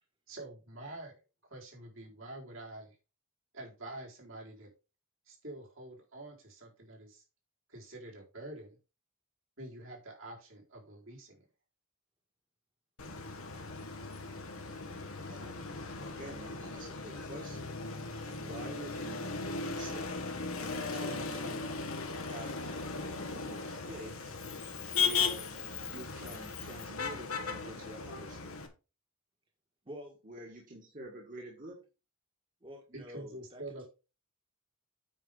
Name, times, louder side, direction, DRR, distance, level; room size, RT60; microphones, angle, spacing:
voice 1, 0.3-1.2 1.5-2.9 3.5-4.7 5.3-7.2 7.7-8.8 9.6-11.4 32.9-33.8, right 1 dB, 65° right, -2 dB, 4.1 m, -47 dB
Motor vehicle (road), 13.0-28.7, left 5 dB, 90° left, 1.7 m, -37 dB
voice 2, 15.2-15.7 16.0-17.8 18.2-20.1 20.6-21.7 22.2-22.7 23.1-24.3 24.9-28.6 30.2-31.9, right 1 dB, 40° right, -1 dB, 2.1 m, -48 dB
voice 3, 29.9-30.2 32.6-33.6, equal, 25° right, 1 dB, 1.8 m, -47 dB
9.1 x 5.4 x 5.1 m, 0.31 s
head